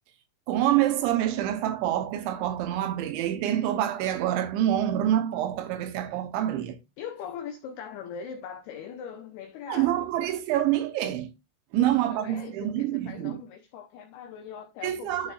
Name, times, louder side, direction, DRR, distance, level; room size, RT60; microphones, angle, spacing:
voice 1, 0.5-6.8 9.7-11.3 11.7-13.4 14.8-15.3, right 12 dB, 75° right, 3.0 m, -26 dB
voice 2, 7.0-10.3 11.7-15.3, left 7 dB, 90° left, 2.2 m, -41 dB
14.0 x 6.1 x 2.4 m
omnidirectional pair, 5.8 m